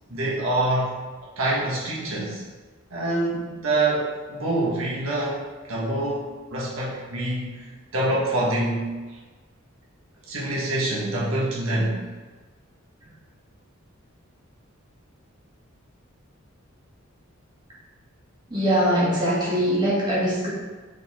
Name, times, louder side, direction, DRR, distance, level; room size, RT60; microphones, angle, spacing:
voice 1, 0.1-0.9 1.4-2.4 2.9-5.4 5.7-7.5 7.9-8.9 10.3-12.1, right 1 dB, 85° right, -5 dB, 1.5 m, -25 dB
voice 2, 18.5-20.5, equal, 20° right, -8 dB, 1.9 m, -22 dB
5.4 x 4.3 x 4.2 m, 1.3 s
head